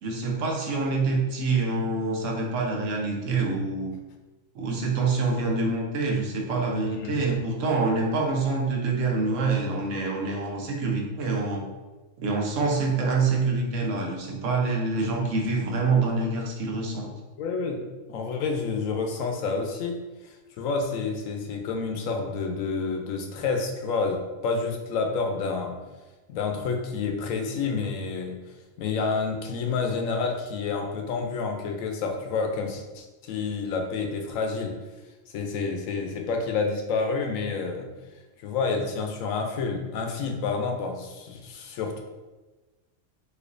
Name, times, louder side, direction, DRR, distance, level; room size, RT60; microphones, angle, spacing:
voice 1, 0.0-3.9 4.5-11.6 12.2-17.1, right 3 dB, 75° right, 0 dB, 1.0 m, -26 dB
voice 2, 17.4-20.0 20.2-25.8 26.3-28.4 28.8-34.7 35.3-37.9 38.4-42.0, left 4 dB, 90° left, 3 dB, 1.0 m, -29 dB
4.2 x 2.6 x 2.5 m, 1.2 s
omnidirectional pair, 1.4 m